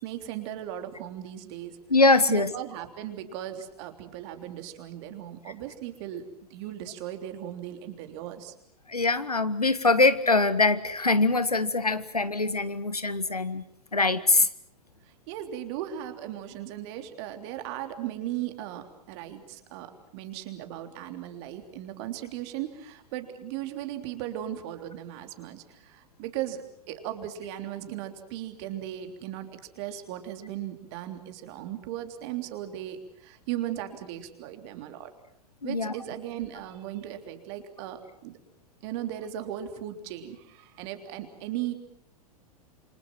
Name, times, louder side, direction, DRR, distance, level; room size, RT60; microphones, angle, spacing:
voice 1, 0.0-1.8 2.3-8.5 15.3-35.1 35.6-38.4 38.8-41.7, right 12 dB, 45° right, 6 dB, 3.4 m, -37 dB
voice 2, 1.9-2.5 8.9-13.6 13.9-14.5 35.6-35.9, left 3 dB, 85° left, 13 dB, 1.5 m, -23 dB
28.0 x 25.5 x 6.1 m, 0.69 s
figure-of-eight pair, 95°, 19 cm